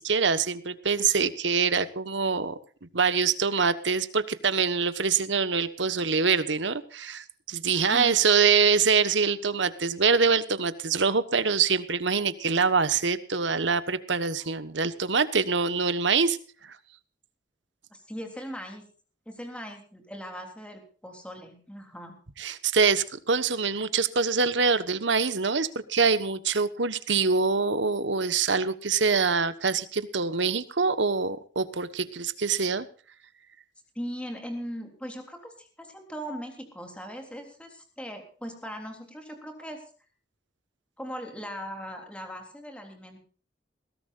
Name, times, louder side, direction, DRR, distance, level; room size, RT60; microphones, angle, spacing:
voice 1, 0.0-2.6 2.9-16.4 22.4-32.8, right 5 dB, 90° right, 13 dB, 1.3 m, -25 dB
voice 2, 7.7-8.2 17.9-18.9 19.2-22.1 32.4-32.5 33.9-39.8 41.0-43.2, equal, 5° left, 4 dB, 3.4 m, -39 dB
21.0 x 17.0 x 2.5 m, 0.41 s
head